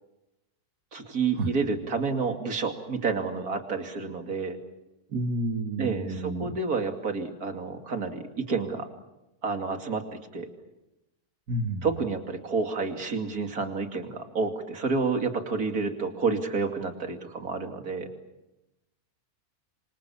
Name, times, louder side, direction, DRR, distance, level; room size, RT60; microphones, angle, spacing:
voice 1, 0.9-4.6 5.8-8.9 9.4-10.0 10.3-10.5 11.8-18.1, right 4 dB, 70° right, 5 dB, 3.0 m, -29 dB
voice 2, 5.1-6.6 11.5-11.9, right 1 dB, 85° right, 3 dB, 2.5 m, -30 dB
26.5 x 26.5 x 7.3 m, 0.95 s
omnidirectional pair, 1.6 m